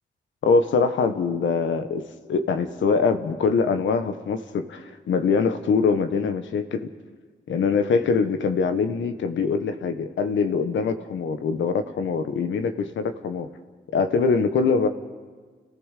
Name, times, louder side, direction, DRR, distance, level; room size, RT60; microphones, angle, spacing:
voice 1, 0.4-2.0 2.3-6.9 7.5-13.5 13.9-14.9, left 5 dB, 85° left, 8 dB, 1.3 m, -23 dB
30.0 x 15.0 x 6.7 m, 1.5 s
cardioid pair, 60°, 19 cm